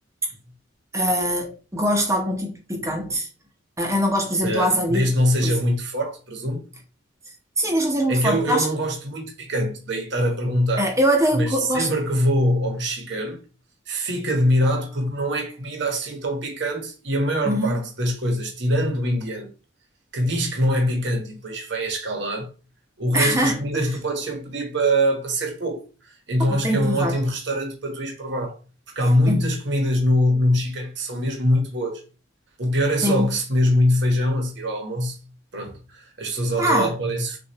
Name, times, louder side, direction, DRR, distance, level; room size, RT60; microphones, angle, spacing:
voice 1, 0.9-3.3 3.8-5.1 5.4-5.6 7.6-8.7 10.8-11.9 17.4-17.8 23.1-23.8 26.4-27.2 29.3-29.4 33.0-33.3 36.6-37.0, equal, 15° right, 0.8 m, -23 dB
voice 2, 4.4-6.6 8.1-10.9 11.3-13.4 13.9-19.5 20.1-22.5 23.0-28.6 28.9-32.0 32.6-35.2 35.5-37.4, equal, 60° right, 1.2 m, -23 dB
6.3 x 2.6 x 2.8 m
head